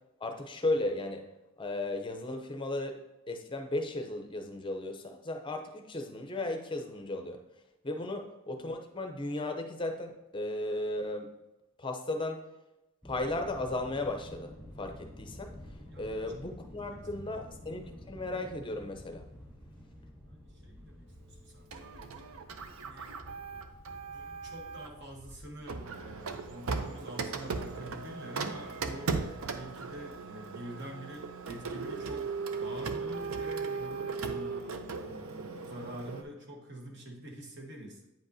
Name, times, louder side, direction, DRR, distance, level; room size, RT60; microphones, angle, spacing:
voice 1, 0.2-1.3 1.6-3.0 3.3-7.4 7.8-11.3 11.8-12.4 13.0-15.5 16.0-19.2, left 2 dB, 20° left, 5 dB, 0.6 m, -35 dB
sound 1, 13.0-26.6, equal, 5° right, 2.4 m, -50 dB
voice 2, 20.2-22.1 22.8-23.1 24.1-38.1, right 1 dB, 50° right, 1 dB, 1.2 m, -46 dB
Printer, 21.7-25.0 25.7-36.2, right 4 dB, 75° right, 0.6 m, -37 dB
9.2 x 5.1 x 2.7 m, 0.97 s
head